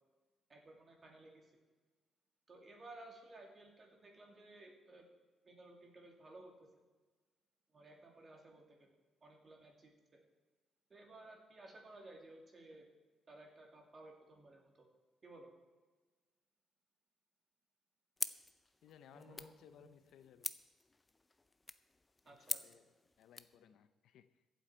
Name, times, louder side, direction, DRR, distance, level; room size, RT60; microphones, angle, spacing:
voice 1, 0.5-1.5 2.5-5.0 5.4-6.7 7.7-8.9 9.2-10.2 10.9-12.9 13.3-14.9 15.2-15.5 19.1-19.9 22.2-22.6, right 2 dB, 30° right, 1 dB, 2.5 m, -57 dB
sound 1, 18.2-23.6, left 2 dB, 15° left, 0.4 m, -46 dB
voice 2, 18.8-20.5 22.2-24.5, left 9 dB, 75° left, 12 dB, 0.6 m, -62 dB
23.0 x 8.0 x 4.5 m, 1.3 s
cardioid pair, 155°, 0 cm